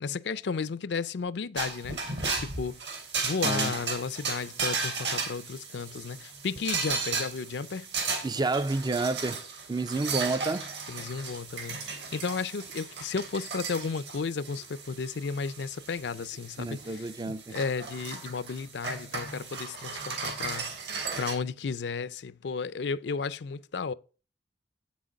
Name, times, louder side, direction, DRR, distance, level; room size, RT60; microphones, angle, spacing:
voice 1, 0.0-2.0 2.4-2.8 3.2-7.9 10.9-20.7 21.2-23.9, left 5 dB, 65° left, 0.5 m, -33 dB
sound 1, 1.6-21.3, right 4 dB, 65° right, 2.7 m, -35 dB
voice 2, 8.2-9.4 9.7-10.7 16.6-17.5, right 3 dB, 25° right, 0.4 m, -30 dB
8.6 x 6.2 x 5.3 m
head